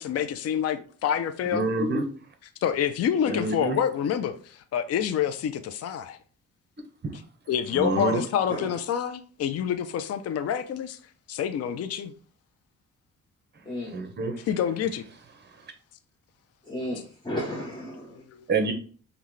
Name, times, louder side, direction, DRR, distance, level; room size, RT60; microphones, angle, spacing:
voice 1, 0.0-1.7 2.6-6.2 7.5-11.0 11.3-12.1 14.5-15.1 18.3-18.5, left 8 dB, 55° left, 0.5 m, -27 dB
voice 2, 1.5-2.1 3.3-3.8 7.0-7.2 7.7-8.2 13.5-14.5 15.4-15.7 18.5-18.7, right 3 dB, 35° right, 1.0 m, -28 dB
voice 3, 13.6-14.0 16.6-18.2, left 1 dB, 15° left, 1.0 m, -34 dB
5.5 x 2.3 x 3.2 m
cardioid pair, 90°, 30 cm